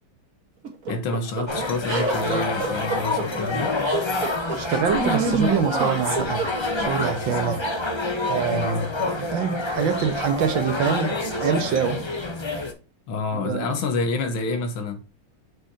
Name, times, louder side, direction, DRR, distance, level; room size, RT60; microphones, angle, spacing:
sound 1, 0.6-6.9, right 4 dB, 45° right, 1.8 m, -27 dB
voice 1, 0.9-3.8 8.5-8.9 13.1-15.0, left 3 dB, 85° left, 2.1 m, -28 dB
sound 2, 1.5-12.7, left 2 dB, 25° left, 0.5 m, -27 dB
voice 2, 4.5-6.5 6.8-7.6 8.3-8.7 9.0-12.0 13.3-13.8, right 7 dB, 70° right, 1.7 m, -25 dB
6.8 x 5.7 x 2.8 m
omnidirectional pair, 2.2 m